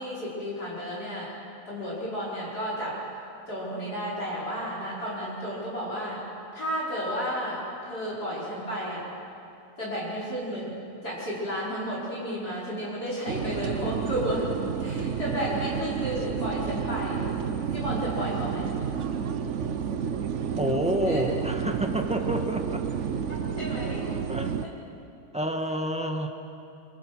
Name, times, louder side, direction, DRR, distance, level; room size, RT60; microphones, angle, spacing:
voice 1, 0.0-1.3 1.7-3.0 3.5-6.3 6.5-9.1 9.8-14.5 14.8-17.3 17.7-18.7 21.0-21.2 23.3-24.0, equal, 60° left, -7 dB, 5.8 m, -32 dB
sound 1, 13.3-24.6, right 7 dB, 50° right, 1.0 m, -30 dB
voice 2, 20.6-22.9 24.3-24.6 25.3-26.3, right 1 dB, 5° right, 3 dB, 1.4 m, -28 dB
25.0 x 24.5 x 6.2 m, 2.8 s
omnidirectional pair, 1.9 m